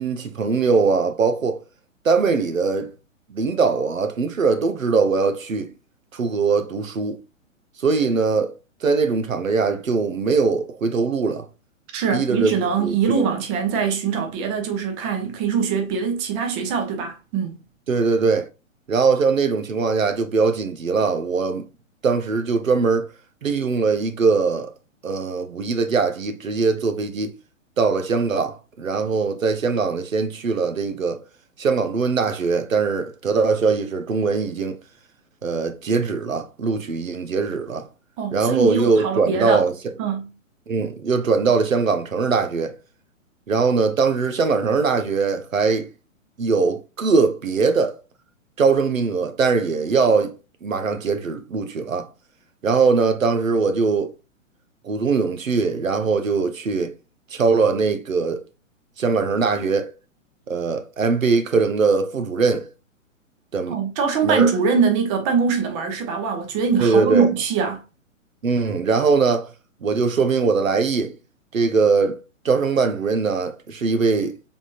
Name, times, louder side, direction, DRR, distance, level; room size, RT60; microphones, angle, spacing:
voice 1, 0.0-1.6 2.0-2.9 3.3-5.7 6.1-7.2 7.8-8.5 8.8-11.5 12.1-12.5 12.8-13.2 17.9-18.5 18.9-21.6 22.0-23.1 23.4-24.7 25.0-27.3 27.8-31.2 31.6-34.8 35.4-37.9 38.3-39.7 40.7-42.7 43.5-45.9 46.4-47.9 48.6-50.3 50.6-52.1 52.6-54.1 54.8-56.9 57.3-58.4 59.0-59.9 60.5-62.7 63.5-63.8 64.2-64.5 66.8-67.3 68.4-69.5 69.8-71.1 71.5-72.2 72.4-74.3, right 4 dB, 80° right, 0.8 m, -21 dB
voice 2, 11.9-17.5 38.2-39.6 40.0-40.3 63.7-67.8, right 6 dB, 25° right, 0.8 m, -22 dB
4.1 x 3.5 x 2.4 m
figure-of-eight pair, 120°, 40 cm